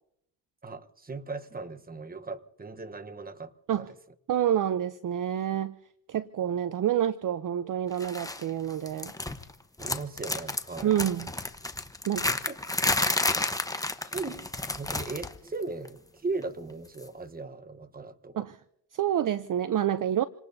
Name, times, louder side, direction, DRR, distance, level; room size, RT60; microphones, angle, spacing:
voice 1, 0.6-3.5 3.8-3.9 9.8-10.9 12.5-12.6 14.0-14.5 14.8-18.5, right 3 dB, 20° right, 1.1 m, -37 dB
voice 2, 4.3-5.7 6.1-9.1 10.8-11.3 12.1-12.3 18.4-18.6 18.9-20.2, right 10 dB, 45° right, 0.6 m, -28 dB
sound 1, 8.0-8.4 8.7-9.5 9.8-15.4 15.6-15.9 17.0-17.1, left 2 dB, 5° left, 1.0 m, -31 dB
28.0 x 19.0 x 2.7 m
cardioid pair, 75°, 47 cm